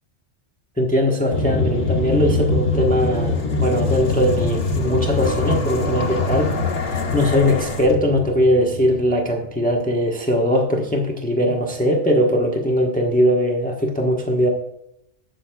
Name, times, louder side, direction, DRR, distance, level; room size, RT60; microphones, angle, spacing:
voice 1, 0.8-14.5, equal, 5° left, 0 dB, 1.1 m, -20 dB
sound 1, 1.3-9.4, left 3 dB, 70° left, 1.7 m, -23 dB
19.0 x 6.9 x 2.3 m, 0.80 s
omnidirectional pair, 1.2 m